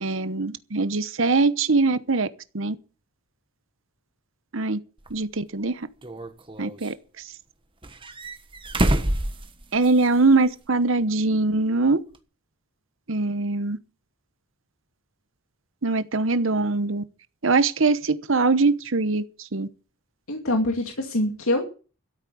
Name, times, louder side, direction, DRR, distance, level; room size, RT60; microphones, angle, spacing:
voice 1, 0.0-2.3 2.5-2.8 4.5-4.8 5.1-5.9 6.6-6.9 9.7-12.0 13.1-13.8 15.8-17.0 17.4-19.2 19.5-19.7, right 3 dB, 65° right, 1.0 m, -22 dB
sound 1, 5.0-5.1 6.0-6.9 7.8-10.2 10.5-10.6 12.1-12.2, right 1 dB, 25° right, 1.3 m, -27 dB
voice 2, 20.3-21.6, left 1 dB, 85° left, 2.4 m, -24 dB
13.0 x 8.4 x 8.4 m
head